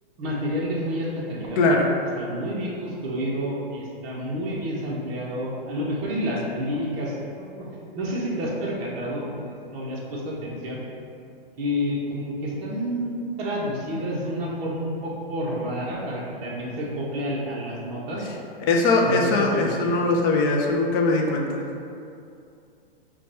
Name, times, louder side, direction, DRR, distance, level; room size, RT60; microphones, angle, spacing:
voice 1, 0.2-1.6 2.2-7.7 8.0-10.8 11.6-18.3 19.0-19.9, equal, 35° right, -5 dB, 0.8 m, -29 dB
voice 2, 1.6-1.9 18.6-21.6, left 2 dB, 25° left, 0 dB, 0.3 m, -21 dB
4.5 x 2.2 x 4.1 m, 2.6 s
hypercardioid pair, 140°, 29 cm